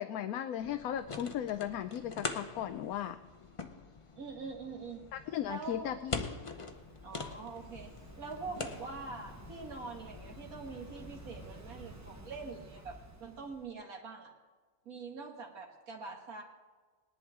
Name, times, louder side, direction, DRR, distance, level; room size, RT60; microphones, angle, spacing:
voice 1, 0.0-3.2 5.1-6.2, left 10 dB, 85° left, 9 dB, 1.1 m, -36 dB
sound 1, 0.6-11.5, left 4 dB, 30° left, 0.7 m, -44 dB
voice 2, 4.2-5.1 5.4-6.0 7.0-7.9 8.2-14.3 14.9-16.4, right 4 dB, 85° right, 0 dB, 2.3 m, -44 dB
Waves surf, 6.0-13.7, right 1 dB, 15° right, 0.7 m, -52 dB
20.0 x 11.0 x 3.6 m, 1.4 s
omnidirectional pair, 1.5 m